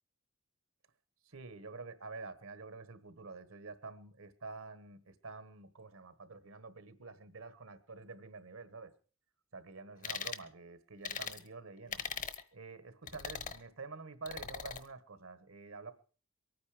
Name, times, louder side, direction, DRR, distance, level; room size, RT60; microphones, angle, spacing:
voice 1, 1.3-8.9 9.5-12.0 12.5-15.9, right 4 dB, 75° right, 13 dB, 1.3 m, -48 dB
sound 1, 10.0-10.4 11.0-11.4 11.9-12.4 13.1-13.6 14.3-14.8, left 6 dB, 40° left, 1.0 m, -40 dB
23.0 x 9.5 x 5.0 m, 0.39 s
head